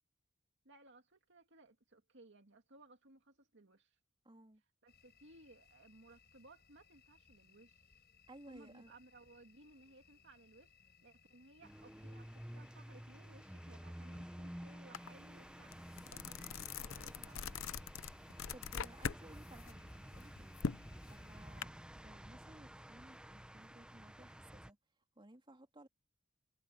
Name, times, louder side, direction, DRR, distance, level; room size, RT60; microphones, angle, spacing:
voice 1, 0.6-4.0 4.8-7.9 8.5-17.7 20.8-21.0, right 2 dB, 60° right, 2.3 m, -62 dB
voice 2, 4.2-4.6 8.3-8.9 18.5-24.8 25.2-25.9, right 1 dB, 25° right, 3.6 m, -59 dB
sound 1, 4.9-21.5, left 6 dB, 55° left, 7.5 m, -68 dB
sound 2, 11.6-24.7, equal, 5° right, 0.9 m, -52 dB
sound 3, 14.9-15.1 15.5-19.2 19.6-21.6, left 6 dB, 75° left, 0.7 m, -42 dB
head